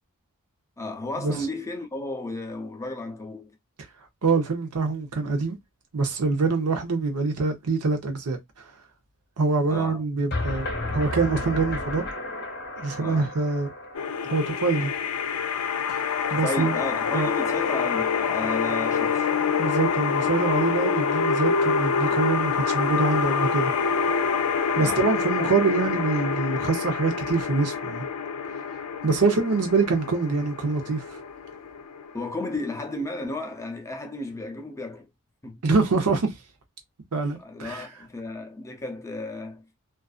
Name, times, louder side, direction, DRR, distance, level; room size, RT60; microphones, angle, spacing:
voice 1, 0.8-3.5 9.7-10.0 13.0-13.3 16.3-19.3 24.8-25.1 32.1-35.1 35.4-35.6 37.4-39.6, left 2 dB, 15° left, 0.5 m, -33 dB
voice 2, 4.2-5.6 5.9-8.4 9.4-12.0 12.8-13.7 14.3-14.9 15.9-16.8 17.1-17.3 19.6-23.7 24.8-28.1 29.0-31.2 35.6-36.3 37.1-37.9, right 4 dB, 80° right, 0.7 m, -25 dB
sound 1, 10.3-15.2, left 2 dB, 50° left, 0.9 m, -33 dB
sound 2, 13.9-32.9, left 6 dB, 85° left, 0.4 m, -26 dB
2.5 x 2.4 x 2.3 m
head